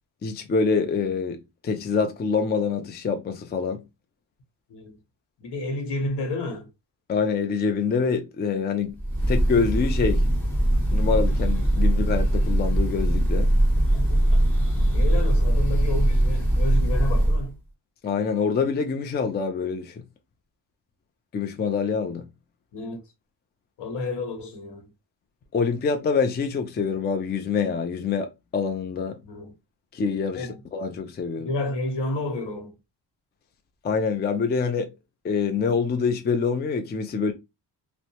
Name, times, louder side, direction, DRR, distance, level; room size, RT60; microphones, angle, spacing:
voice 1, 0.2-3.8 7.1-9.0 9.3-10.3 10.9-13.5 18.0-20.0 21.3-22.2 25.5-29.2 29.9-31.5 33.8-34.9 35.2-37.3, left 5 dB, 25° left, 0.4 m, -25 dB
voice 2, 5.4-6.7 13.8-14.4 14.9-17.5 22.7-23.0 23.8-24.9 29.2-29.5 30.3-30.6 31.4-32.7, left 2 dB, 70° left, 1.1 m, -31 dB
Breathing / Bird, 9.0-17.5, right 1 dB, 5° left, 1.5 m, -21 dB
2.7 x 2.1 x 2.8 m
cardioid pair, 105°, 43 cm